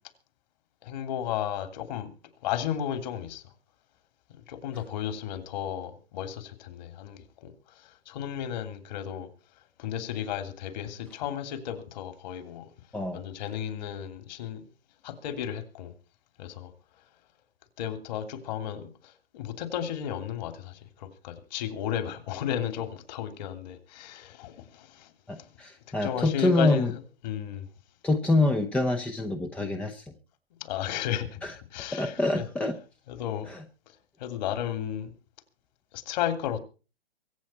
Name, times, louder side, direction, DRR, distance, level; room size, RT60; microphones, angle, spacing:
voice 1, 0.8-2.1 2.4-3.4 4.3-7.5 8.1-9.3 9.8-12.6 13.1-14.6 15.0-15.9 16.4-16.7 17.8-25.1 26.0-27.7 30.6-31.4 31.7-32.4 33.1-33.5 34.2-35.1 35.9-36.6, left 10 dB, 45° left, 2.8 m, -33 dB
voice 2, 25.3-26.9 28.0-30.0 31.4-31.5 31.9-32.7 33.5-33.6, left 2 dB, 5° left, 0.7 m, -26 dB
24.0 x 8.4 x 4.3 m
hypercardioid pair, 140°, 31 cm